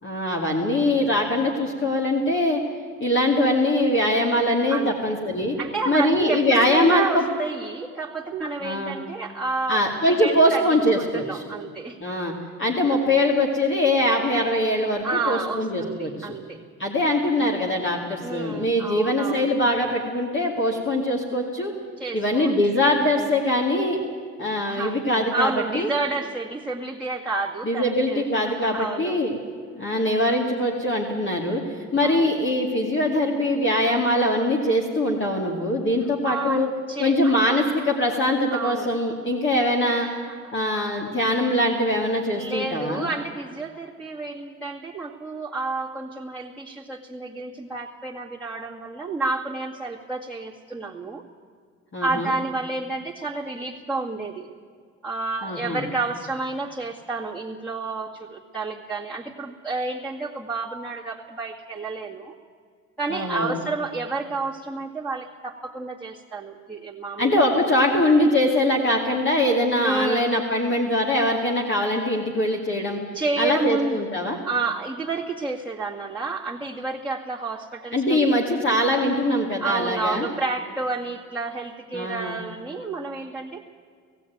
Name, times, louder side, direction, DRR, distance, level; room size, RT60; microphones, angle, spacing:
voice 1, 0.0-2.6 3.0-5.6 5.9-7.2 8.6-9.0 9.7-11.4 12.0-12.3 12.6-16.4 16.8-21.7 22.1-24.0 24.4-25.9 27.6-29.4 29.7-36.7 37.0-40.1 40.5-43.1 51.9-52.3 55.4-55.8 63.1-63.6 67.2-73.0 73.4-74.4 77.9-80.3 81.9-82.4, left 1 dB, 40° left, 0 dB, 2.4 m, -22 dB
voice 2, 5.6-12.0 15.0-16.6 18.2-19.5 22.0-22.5 24.7-25.0 25.3-29.2 32.0-32.4 36.2-37.6 38.5-38.9 40.0-40.4 42.3-51.2 52.0-54.5 55.0-62.4 63.0-67.3 69.8-70.3 73.1-74.0 74.4-78.4 79.6-83.7, right 3 dB, 5° left, -3 dB, 2.1 m, -30 dB
18.5 x 15.5 x 9.3 m, 2.1 s
cardioid pair, 90°, 30 cm